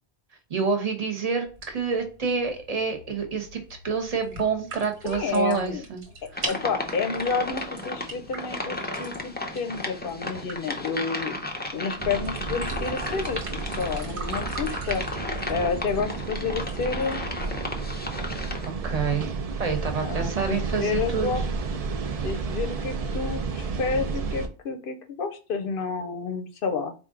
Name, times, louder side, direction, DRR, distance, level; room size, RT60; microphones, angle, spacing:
voice 1, 0.5-6.0 6.3-6.5 18.8-19.3 19.6-21.4 22.0-22.1, right 5 dB, 35° right, 4 dB, 1.0 m, -28 dB
sound 1, 1.5-17.5, right 2 dB, 80° right, 1.5 m, -42 dB
voice 2, 5.0-5.8 6.5-11.4 11.7-15.2 15.5-17.2 20.0-21.4 22.2-26.9, left 5 dB, 60° left, 7 dB, 0.7 m, -30 dB
sound 2, 6.3-18.7, left 2 dB, 15° left, 0.4 m, -34 dB
sound 3, 12.0-24.5, right 4 dB, 55° right, 0.4 m, -32 dB
4.4 x 2.5 x 3.7 m, 0.35 s
omnidirectional pair, 1.1 m